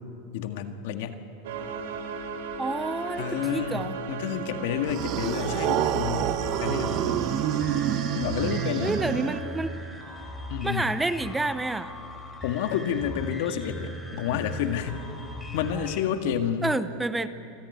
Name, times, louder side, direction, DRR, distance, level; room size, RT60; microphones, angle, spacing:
voice 1, 0.3-1.2 3.2-6.3 6.6-7.2 8.1-8.9 10.5-10.8 12.4-15.1 15.5-16.7, left 9 dB, 70° left, 6 dB, 1.8 m, -29 dB
sound 1, 1.4-9.4, right 5 dB, 85° right, 3.0 m, -35 dB
voice 2, 2.6-4.0 7.0-7.9 8.8-9.8 10.6-11.9 16.6-17.3, right 2 dB, 10° right, 12 dB, 0.7 m, -29 dB
sound 2, 4.9-9.7, right 12 dB, 45° right, 0.9 m, -28 dB
sound 3, 6.4-16.0, left 1 dB, 15° left, 3.4 m, -39 dB
27.0 x 15.5 x 9.5 m, 2.7 s
supercardioid pair, 145°, 0 cm